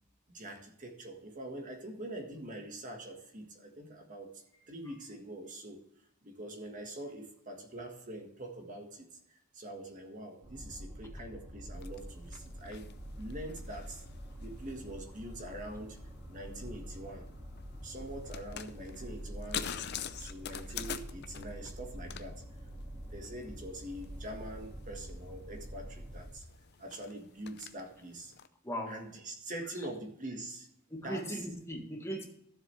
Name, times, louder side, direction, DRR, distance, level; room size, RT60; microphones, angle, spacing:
voice 1, 0.3-5.8 6.2-12.9 13.2-14.0 14.4-16.0 16.2-17.3 17.8-19.8 20.2-22.4 23.1-26.5 26.8-28.3 28.9-30.7 31.0-31.3, right 1 dB, 40° right, 3 dB, 1.6 m, -44 dB
sound 1, 10.4-26.3, equal, 15° right, 2.0 m, -46 dB
sound 2, 11.7-28.5, left 9 dB, 50° left, 0.6 m, -47 dB
voice 2, 30.9-32.2, equal, 15° left, 2 dB, 1.7 m, -38 dB
13.0 x 7.5 x 3.3 m, 0.74 s
head